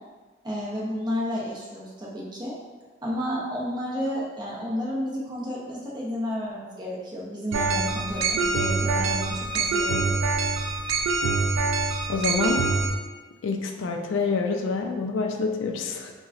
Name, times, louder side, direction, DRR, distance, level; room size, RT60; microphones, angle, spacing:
voice 1, 0.4-2.6 3.0-10.1, equal, 20° right, -6 dB, 0.5 m, -31 dB
sound 1, 7.5-12.9, right 3 dB, 85° right, 0.3 m, -25 dB
voice 2, 12.1-12.6 13.4-16.1, left 4 dB, 80° left, 3 dB, 0.3 m, -27 dB
3.8 x 2.1 x 2.4 m, 1.3 s
head